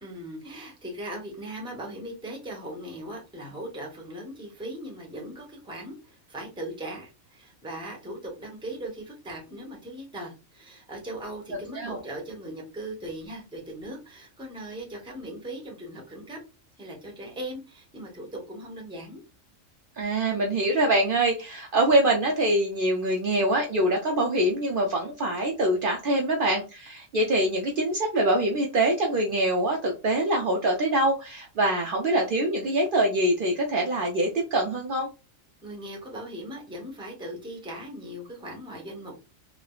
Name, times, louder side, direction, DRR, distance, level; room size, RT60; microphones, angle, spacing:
voice 1, 0.0-16.4 16.8-19.2 35.6-39.2, right 1 dB, 5° right, 0 dB, 0.6 m, -39 dB
voice 2, 20.0-35.1, right 1 dB, 65° right, 0 dB, 0.5 m, -24 dB
3.3 x 2.1 x 2.3 m, 0.30 s
omnidirectional pair, 1.4 m